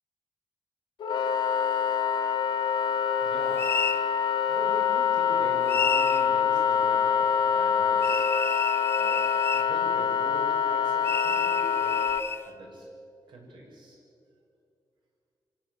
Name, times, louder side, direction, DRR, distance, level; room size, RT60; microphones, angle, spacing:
Wind instrument woodwind instrument, 1.0-12.2, left 7 dB, 80° left, 1.5 m, -25 dB
voice 1, 3.2-3.8 4.5-8.3 8.9-9.2 9.5-12.0 12.4-12.9 13.3-14.0, right 1 dB, 80° right, -2 dB, 6.9 m, -43 dB
sound 1, 3.6-4.0 5.7-6.3 8.0-9.7 11.0-12.4, left 4 dB, 30° left, 0.8 m, -31 dB
24.5 x 16.5 x 8.3 m, 2.4 s
wide cardioid pair, 150°, 8 cm